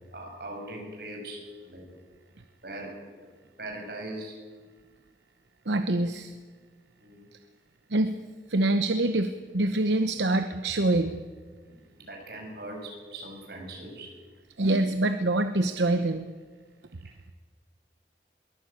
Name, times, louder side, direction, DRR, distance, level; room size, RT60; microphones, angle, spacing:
voice 1, 0.1-1.8 2.6-3.0 3.6-4.4 7.0-7.3 11.6-14.2 17.0-17.3, right 1 dB, 65° right, 1 dB, 6.5 m, -40 dB
voice 2, 5.7-6.4 7.9-8.2 8.5-11.2 14.6-16.3, right 2 dB, 85° right, 8 dB, 0.9 m, -25 dB
22.0 x 17.5 x 8.4 m, 1.4 s
head